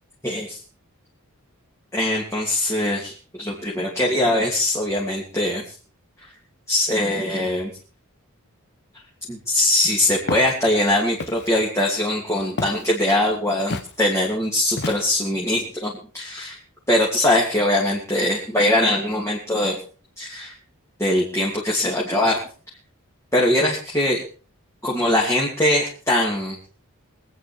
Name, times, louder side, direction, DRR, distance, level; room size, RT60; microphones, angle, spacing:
voice 1, 0.2-0.6 1.9-5.7 6.7-7.7 9.3-16.6 16.9-19.8 20.2-20.6 21.0-22.4 23.3-24.2 24.8-26.6, left 1 dB, 10° left, -4 dB, 2.8 m, -22 dB
Walk footsteps, 10.3-10.5 11.2-11.6 12.6-12.9 13.7-13.9 14.8-15.3, left 3 dB, 50° left, 0.9 m, -30 dB
23.5 x 9.3 x 4.6 m, 0.39 s
head